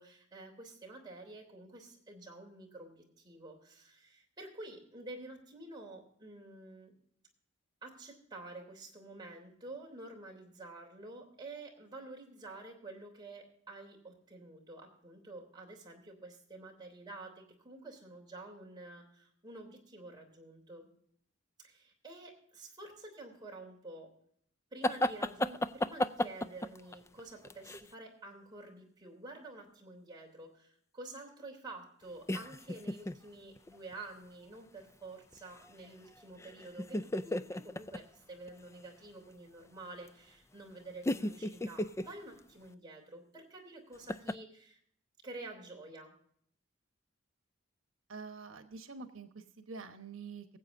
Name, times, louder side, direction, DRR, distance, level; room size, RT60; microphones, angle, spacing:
voice 1, 0.0-6.9 7.8-20.9 21.6-24.1 24.7-44.8 45.2-46.1, right 2 dB, 20° right, -1 dB, 3.2 m, -49 dB
sound 1, 24.8-27.9 32.3-33.2 33.6-33.9 35.3-35.9 36.2-38.0 38.5-38.6 40.1-40.2 41.0-42.1 44.1-44.3, left 1 dB, 15° left, 0.3 m, -34 dB
voice 2, 48.1-50.5, right 4 dB, 90° right, 7 dB, 1.1 m, -46 dB
23.5 x 7.9 x 2.6 m, 0.65 s
head